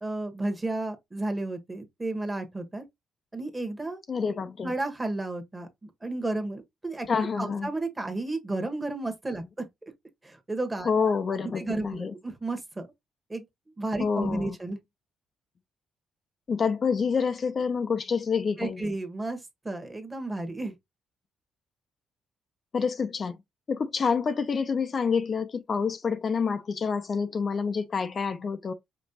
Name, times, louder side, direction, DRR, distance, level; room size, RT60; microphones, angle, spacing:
voice 1, 0.0-2.8 3.3-4.0 4.6-7.1 7.4-9.7 10.2-12.9 13.3-13.4 13.7-14.8 18.6-20.7, right 2 dB, 15° right, 1.2 m, -32 dB
voice 2, 4.1-4.7 7.1-7.7 10.9-12.1 14.0-14.6 16.5-18.8 22.7-23.4 23.7-28.7, left 5 dB, 45° left, 0.5 m, -27 dB
5.2 x 3.0 x 2.8 m
cardioid pair, 90°, 0 cm